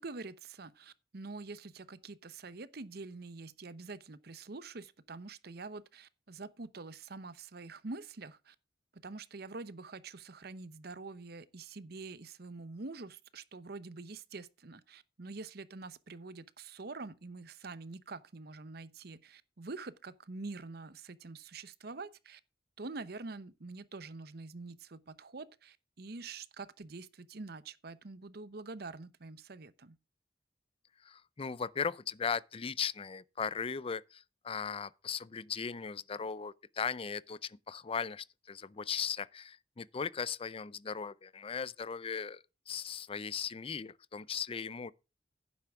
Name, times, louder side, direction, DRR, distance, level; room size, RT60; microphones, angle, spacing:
voice 1, 0.0-8.5 8.9-22.4 22.8-30.0, right 3 dB, 60° right, 0.8 m, -46 dB
voice 2, 31.0-44.9, left 6 dB, 30° left, 0.5 m, -38 dB
11.5 x 9.5 x 3.6 m
head